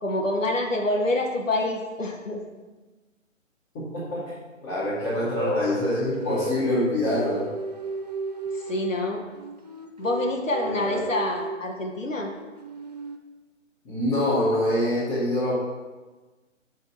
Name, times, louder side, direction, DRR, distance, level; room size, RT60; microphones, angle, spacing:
voice 1, 0.0-2.4 8.5-9.2 10.0-12.3, left 1 dB, 75° left, 1 dB, 1.2 m, -26 dB
voice 2, 4.6-7.5 10.6-11.0 13.8-15.6, left 1 dB, 10° left, -11 dB, 1.1 m, -25 dB
sound 1, 5.0-6.7 7.1-9.0 9.3-11.7 12.1-13.2, right 2 dB, 35° right, 0.5 m, -34 dB
6.2 x 4.6 x 5.7 m, 1.2 s
figure-of-eight pair, 140°, 39 cm